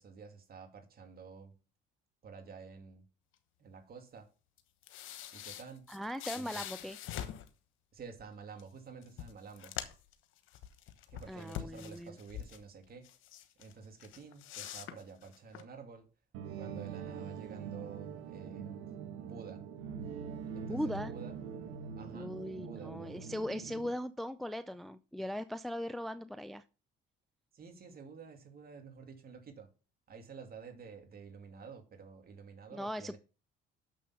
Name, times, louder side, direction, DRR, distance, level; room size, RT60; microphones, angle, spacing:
voice 1, 0.0-1.6 2.2-3.1 3.6-4.3 5.3-5.9 6.3-6.7 7.9-9.7 11.1-13.1 13.6-16.1 16.5-19.6 20.5-21.4 22.0-23.2 27.5-29.7 30.1-33.2, right 5 dB, 45° right, 2.5 m, -50 dB
sound 1, 4.6-7.5 8.6-8.7 9.0-10.1 10.5-12.6 13.0-13.7 14.0-15.6, left 11 dB, 70° left, 1.1 m, -44 dB
voice 2, 5.9-7.0 11.3-12.2 20.7-21.1 22.1-26.6 32.7-33.2, equal, ahead, 0.4 m, -39 dB
sound 2, 16.3-23.9, right 6 dB, 85° right, 1.1 m, -43 dB
6.7 x 6.3 x 5.7 m
supercardioid pair, 80°, 21 cm